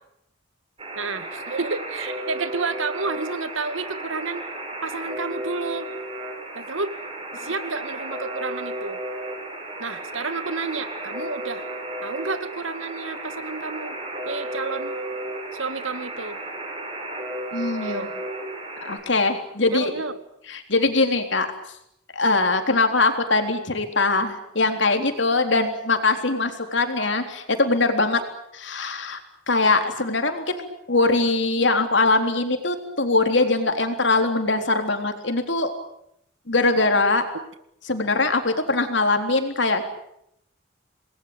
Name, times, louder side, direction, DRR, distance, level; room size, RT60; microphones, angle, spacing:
Alarm, 0.8-19.0, right 1 dB, 25° right, 7.2 m, -34 dB
voice 1, 1.0-4.4 4.8-5.9 6.5-6.9 7.4-9.0 9.8-11.6 12.0-14.0 14.3-14.9 15.5-16.4 17.8-18.1 19.7-20.2, right 4 dB, 80° right, 11 dB, 2.1 m, -30 dB
voice 2, 17.5-18.1 18.8-19.9 20.5-21.5 22.1-28.2 28.5-29.2 29.5-35.7 36.5-37.3 37.9-39.8, left 3 dB, 60° left, 6 dB, 3.7 m, -22 dB
27.5 x 21.0 x 8.9 m, 0.77 s
head